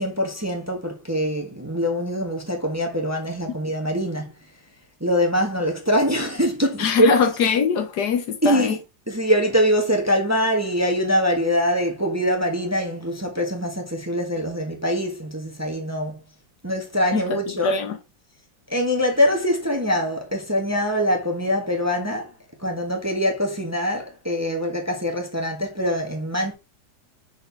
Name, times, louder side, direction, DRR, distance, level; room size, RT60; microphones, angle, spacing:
voice 1, 0.0-4.3 5.0-7.2 8.4-8.8 9.1-16.2 16.6-17.7 18.7-22.3 22.6-26.5, equal, 10° right, 1.1 m, -23 dB
voice 2, 6.8-8.8 17.1-18.0, left 6 dB, 65° left, 1.3 m, -22 dB
6.3 x 4.5 x 3.9 m
omnidirectional pair, 2.0 m